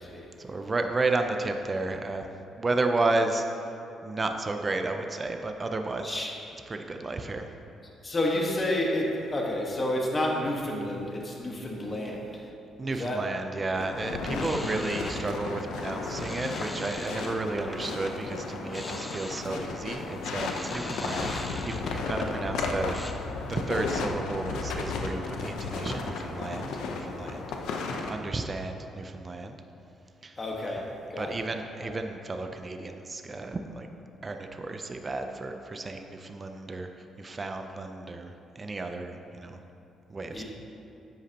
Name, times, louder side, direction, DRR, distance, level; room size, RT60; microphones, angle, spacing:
voice 1, 0.4-2.3 2.6-3.4 4.0-6.3 6.7-7.5 12.8-21.4 21.6-23.2 23.5-27.8 28.1-29.6 30.2-30.8 31.2-33.9 34.2-39.6 40.1-40.4, right 3 dB, 30° right, 5 dB, 0.6 m, -32 dB
voice 2, 6.0-6.4 8.0-12.3 12.9-13.2 14.3-14.4 30.4-31.4 31.8-31.9 40.3-40.4, left 1 dB, 30° left, -1 dB, 1.5 m, -30 dB
sound 1, 13.7-28.1, left 4 dB, 85° left, 0.7 m, -34 dB
sound 2, 14.4-18.2 18.6-23.1, left 1 dB, 10° left, 0.7 m, -41 dB
10.5 x 8.3 x 2.9 m, 2.8 s
cardioid pair, 90°, 0 cm